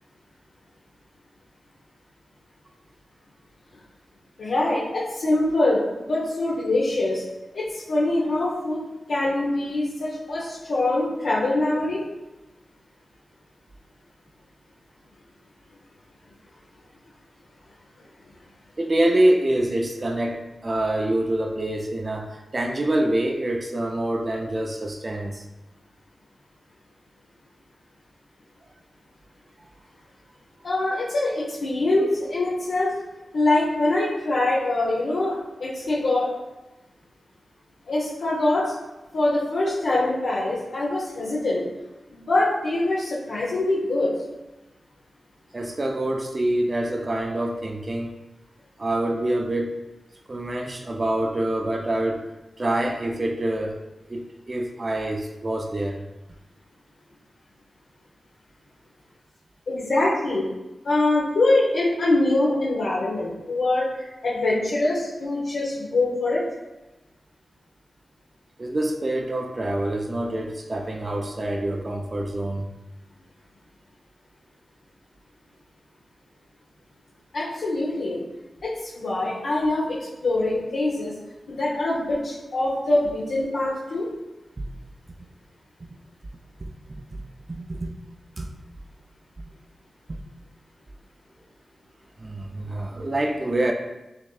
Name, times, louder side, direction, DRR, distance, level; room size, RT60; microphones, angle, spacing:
voice 1, 4.4-7.2 7.5-8.8 9.1-12.0 30.6-32.9 33.3-36.3 37.9-38.7 39.1-41.6 42.1-44.1 59.7-60.5 60.8-66.4 77.3-78.2 78.6-81.1 81.5-84.1, left 2 dB, 75° left, -7 dB, 0.8 m, -24 dB
voice 2, 18.8-25.4 29.6-29.7 45.5-48.1 48.8-49.8 50.3-52.3 52.6-53.8 54.1-56.0 68.6-72.7 86.6-87.9 88.4-88.5 89.4-89.5 90.1-90.2 92.2-93.7, right 1 dB, 45° right, 2 dB, 0.4 m, -26 dB
6.2 x 2.6 x 2.3 m, 1.0 s
cardioid pair, 45°, 0 cm